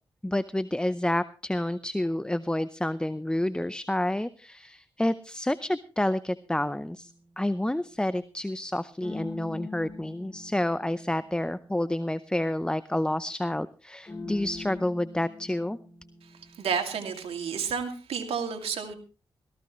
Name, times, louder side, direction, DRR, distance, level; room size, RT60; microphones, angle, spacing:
voice 1, 0.2-15.8, left 1 dB, 10° left, 15 dB, 0.6 m, -29 dB
sound 1, 7.0-8.0 9.0-13.1 14.1-17.3, left 3 dB, 30° left, 3.9 m, -44 dB
voice 2, 16.6-18.9, right 6 dB, 90° right, 4 dB, 2.4 m, -31 dB
17.5 x 15.0 x 3.2 m, 0.34 s
cardioid pair, 55°, 10 cm